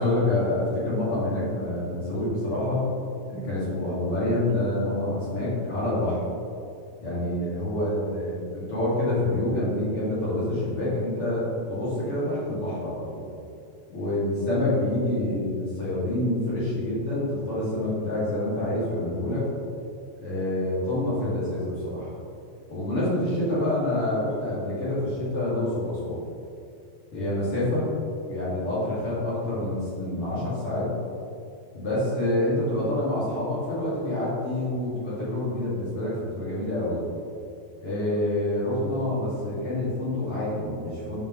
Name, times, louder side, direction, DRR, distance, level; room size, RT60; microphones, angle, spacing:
voice 1, 0.0-2.9 3.3-6.2 7.0-13.3 13.9-19.5 20.2-22.1 22.7-26.2 27.1-27.9 28.2-30.9 31.7-37.0 37.8-41.2, left 1 dB, 45° left, -9 dB, 2.3 m, -27 dB
11.5 x 5.3 x 3.0 m, 2.4 s
omnidirectional pair, 4.8 m